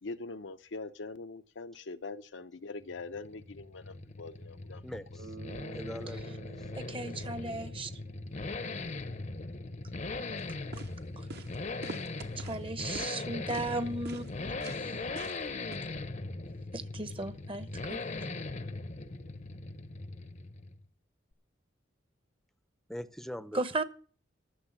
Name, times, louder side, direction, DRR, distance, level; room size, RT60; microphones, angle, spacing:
voice 1, 0.0-4.8, left 3 dB, 75° left, 0.7 m, -43 dB
sound 1, 2.8-20.9, left 3 dB, 40° left, 0.7 m, -40 dB
voice 2, 4.8-5.3 5.7-6.7 22.9-23.6, equal, ahead, 0.6 m, -42 dB
Bass guitar, 5.2-9.2, right 5 dB, 80° right, 4.7 m, -51 dB
voice 3, 6.8-7.9 11.2-11.4 12.4-15.0 16.7-18.0 23.5-23.8, right 2 dB, 30° right, 0.9 m, -36 dB
footsteps-concrete-asphalt, 10.4-10.5 10.7-10.9 11.3-11.5 11.8-12.6 12.9-13.2 13.5-13.7 14.0-14.3 14.6-14.8 15.2-15.4 15.7-15.8, right 3 dB, 55° right, 1.1 m, -44 dB
13.5 x 7.1 x 7.3 m
head